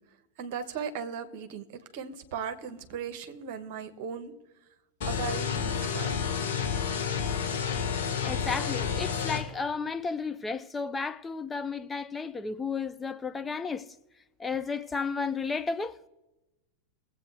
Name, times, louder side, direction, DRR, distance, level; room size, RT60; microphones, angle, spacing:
voice 1, 0.1-4.3 5.0-6.2, right 7 dB, 45° right, 1.2 m, -37 dB
sound 1, 5.0-9.4, left 7 dB, 55° left, 3.1 m, -30 dB
voice 2, 8.2-13.9 14.4-16.0, left 5 dB, 15° left, 0.4 m, -33 dB
21.5 x 8.2 x 3.4 m
figure-of-eight pair, 90°, 0 cm